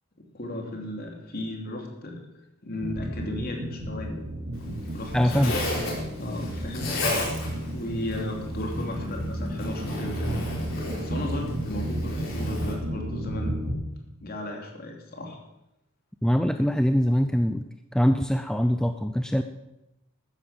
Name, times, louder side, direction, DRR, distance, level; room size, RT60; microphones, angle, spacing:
voice 1, 0.3-2.2 2.6-4.2 4.7-5.5 6.2-6.9 7.7-10.4 10.8-13.6 14.2-15.4, left 1 dB, 45° left, 1 dB, 2.9 m, -35 dB
sound 1, 2.8-13.7, right 1 dB, 55° right, 3.4 m, -33 dB
Zipper (clothing), 4.5-12.7, left 2 dB, 65° left, 4.4 m, -34 dB
voice 2, 5.1-5.6 16.2-17.7 17.9-19.4, equal, 5° left, 8 dB, 0.5 m, -23 dB
13.5 x 9.6 x 7.4 m, 0.91 s
head